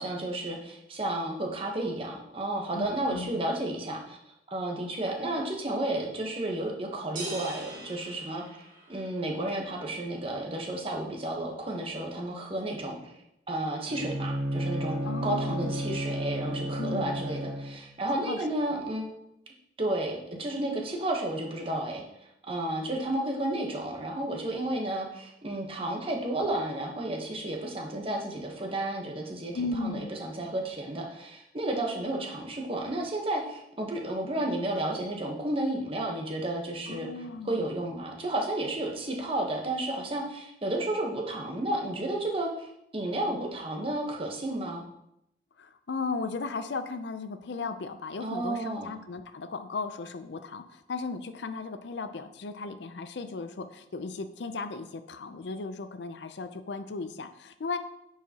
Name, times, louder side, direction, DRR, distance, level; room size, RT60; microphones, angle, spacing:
voice 1, 0.0-4.2 4.5-8.4 8.9-13.1 13.5-15.0 15.2-19.0 19.8-29.5 29.8-37.1 37.4-44.8 48.2-48.9, right 1 dB, 30° right, 0 dB, 1.0 m, -32 dB
voice 2, 2.7-3.4 15.0-16.0 16.8-17.2 18.2-18.8 29.5-30.1 36.9-37.6 45.6-57.8, left 3 dB, 70° left, 10 dB, 0.5 m, -36 dB
sound 1, 7.2-9.2, right 1 dB, 45° right, 1.9 m, -40 dB
Bowed string instrument, 13.8-17.9, right 1 dB, 70° right, 1.9 m, -32 dB
9.1 x 4.8 x 2.9 m, 0.81 s
head